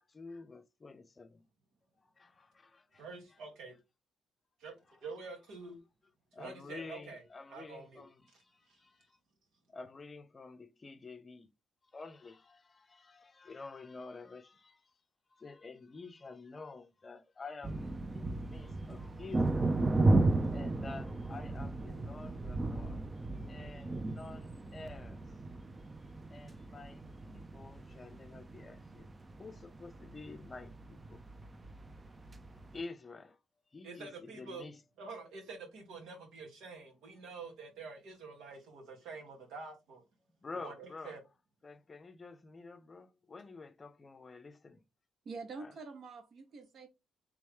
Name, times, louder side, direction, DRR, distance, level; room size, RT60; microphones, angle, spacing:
voice 1, 0.0-1.5 2.2-3.0 4.9-5.0 6.3-9.2 9.7-11.5 11.9-15.0 15.3-23.0 23.4-25.2 26.3-29.1 29.4-31.2 32.5-33.4 33.7-34.8 40.4-41.2 41.6-44.8 45.6-45.7, left 3 dB, 30° left, 0.5 m, -49 dB
voice 2, 3.0-3.8 4.6-4.7 5.0-5.8 6.4-7.2 7.5-8.1 8.7-8.8 33.8-34.6 35.0-40.0 40.6-41.2, right 4 dB, 85° right, 1.6 m, -47 dB
sound 1, 17.6-32.8, right 2 dB, 25° right, 0.5 m, -35 dB
voice 3, 45.2-46.9, right 4 dB, 55° right, 1.1 m, -46 dB
3.4 x 3.2 x 3.5 m
cardioid pair, 90°, 0 cm